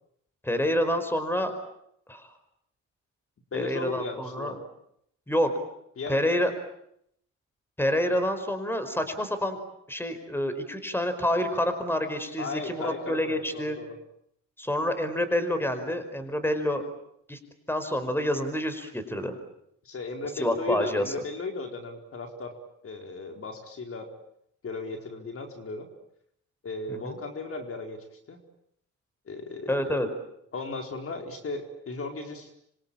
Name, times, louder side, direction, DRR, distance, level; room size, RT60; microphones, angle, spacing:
voice 1, 0.4-1.5 2.1-2.3 3.5-4.5 5.3-5.5 6.1-6.5 7.8-9.6 9.9-13.8 14.6-16.8 17.3-17.4 17.7-19.4 20.4-21.1 26.9-27.1 29.7-30.1, left 1 dB, 5° left, 10 dB, 5.1 m, -28 dB
voice 2, 3.5-4.6 6.0-6.4 12.4-13.9 19.8-22.5 22.8-24.1 24.6-25.9 26.6-28.4 29.3-30.0 30.5-32.5, left 3 dB, 45° left, 5 dB, 4.5 m, -36 dB
27.0 x 25.0 x 8.8 m, 0.75 s
cardioid pair, 90°, 30 cm